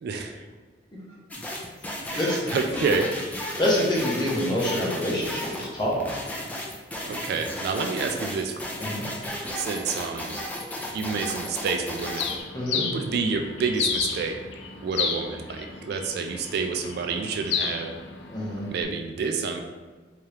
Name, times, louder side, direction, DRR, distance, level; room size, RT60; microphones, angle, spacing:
voice 1, 0.0-0.4 2.1-3.1 7.1-8.5 9.5-10.4 10.9-12.3 12.7-14.4 14.8-17.9 18.7-19.6, right 4 dB, 60° right, 4 dB, 0.3 m, -28 dB
sound 1, 1.3-12.4, left 1 dB, 10° left, 0.4 m, -34 dB
voice 2, 1.8-2.4 3.6-6.0 8.8-9.1 12.5-12.8 18.3-18.7, left 1 dB, 25° left, -5 dB, 0.9 m, -26 dB
Bird, 12.1-18.8, left 6 dB, 65° left, 0.4 m, -32 dB
3.5 x 2.9 x 3.3 m, 1.4 s
head